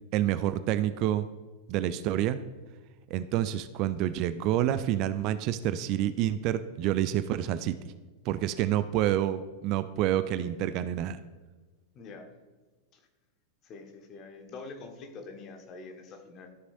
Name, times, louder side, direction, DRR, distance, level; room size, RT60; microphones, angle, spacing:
voice 1, 0.1-1.3 1.7-2.4 3.1-7.7 8.3-11.2, right 12 dB, 40° right, 13 dB, 0.4 m, -28 dB
voice 2, 11.9-12.3 12.9-13.1 13.6-16.6, left 3 dB, 35° left, 4 dB, 1.3 m, -45 dB
13.5 x 6.3 x 2.6 m, 1.3 s
figure-of-eight pair, 90°, 0 cm